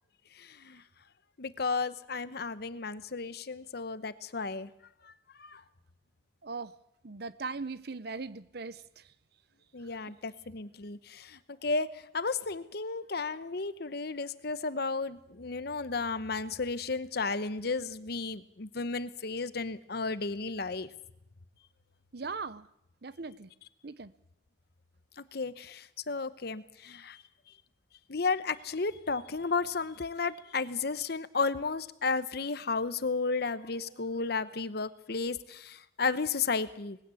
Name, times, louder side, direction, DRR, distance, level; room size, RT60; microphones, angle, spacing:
voice 1, 0.3-0.8 1.4-4.7 5.0-5.1 5.4-5.6 9.7-20.9 25.2-27.2 28.1-37.0, left 4 dB, 60° left, 14 dB, 0.9 m, -33 dB
voice 2, 7.0-8.8 22.1-22.7 23.0-23.5 23.8-24.1, right 4 dB, 60° right, 16 dB, 0.8 m, -39 dB
20.0 x 16.0 x 8.4 m, 0.79 s
head